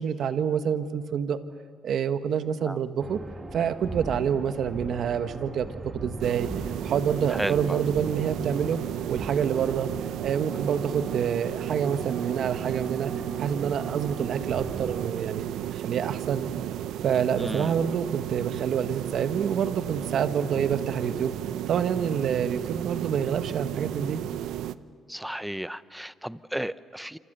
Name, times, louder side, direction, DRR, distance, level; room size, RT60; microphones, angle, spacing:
voice 1, 0.0-1.4 1.8-3.2 3.5-6.5 6.8-8.8 9.1-9.9 10.2-13.1 13.4-15.5 15.7-16.5 17.0-21.3 21.7-24.2, right 7 dB, 65° right, 9 dB, 1.4 m, -27 dB
sound 1, 3.0-15.1, right 2 dB, 25° right, 1.5 m, -40 dB
sound 2, 6.2-24.8, right 12 dB, 85° right, 0.6 m, -33 dB
voice 2, 7.3-7.8 17.4-17.7 25.1-27.2, equal, 5° right, 15 dB, 0.7 m, -34 dB
27.5 x 27.0 x 6.8 m, 2.3 s
cardioid pair, 90°, 0 cm